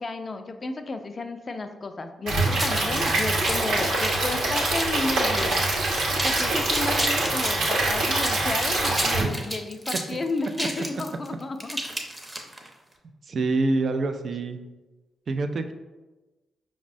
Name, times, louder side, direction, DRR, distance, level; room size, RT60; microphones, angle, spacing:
voice 1, 0.0-5.6 6.2-11.8, left 3 dB, 45° left, 7 dB, 0.3 m, -32 dB
Stream / Liquid, 2.3-9.2, right 2 dB, 80° right, 0.8 m, -24 dB
sound 1, 2.5-5.0 5.4-5.7 6.0-7.6 8.1-12.7, right 1 dB, 20° right, 0.7 m, -31 dB
voice 2, 13.3-14.6 15.3-15.7, right 3 dB, 60° right, 7 dB, 0.3 m, -26 dB
5.1 x 2.1 x 2.5 m, 1.1 s
supercardioid pair, 45°, 0 cm